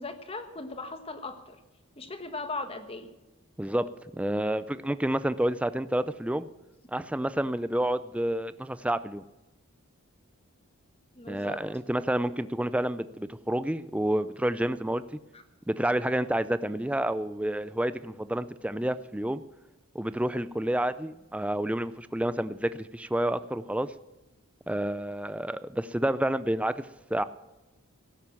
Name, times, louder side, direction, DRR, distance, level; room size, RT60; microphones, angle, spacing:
voice 1, 0.0-1.6 2.0-3.1 11.1-11.6 15.3-15.4, left 3 dB, 25° left, 8 dB, 1.3 m, -38 dB
voice 2, 3.6-6.5 6.9-9.2 11.3-15.0 15.7-19.4 19.9-23.9 24.7-27.2, right 1 dB, 5° right, 14 dB, 0.4 m, -29 dB
16.5 x 9.2 x 7.2 m, 1.0 s
head